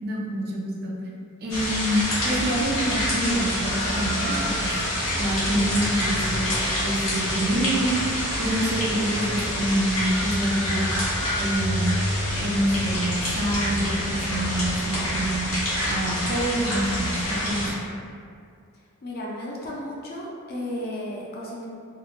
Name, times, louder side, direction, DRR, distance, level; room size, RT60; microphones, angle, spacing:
voice 1, 0.0-0.9 1.4-4.8 5.2-8.0 8.4-10.9 11.4-12.0 12.4-15.5 15.9-17.7, right 1 dB, 45° right, -3 dB, 0.4 m, -26 dB
sound 1, 1.5-17.7, left 1 dB, 75° left, 1.0 m, -27 dB
voice 2, 19.0-21.7, left 1 dB, 45° left, -4 dB, 0.4 m, -34 dB
2.9 x 2.1 x 2.4 m, 2.3 s
head